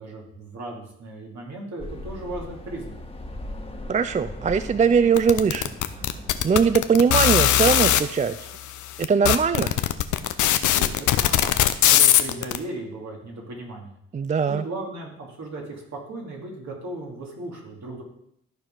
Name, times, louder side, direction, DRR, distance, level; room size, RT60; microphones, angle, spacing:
voice 1, 0.0-2.9 10.7-13.9 14.5-18.0, right 2 dB, 65° right, -2 dB, 2.7 m, -36 dB
sound 1, 1.8-7.0, left 1 dB, 20° left, 1.5 m, -38 dB
voice 2, 3.9-5.7 6.4-8.3 9.0-9.7 14.1-14.6, right 6 dB, 25° right, 12 dB, 0.4 m, -21 dB
sound 2, 5.2-8.0 8.7-8.8 9.0-12.6, left 12 dB, 80° left, 0.6 m, -19 dB
13.0 x 4.7 x 3.8 m, 0.75 s
supercardioid pair, 55°, 30 cm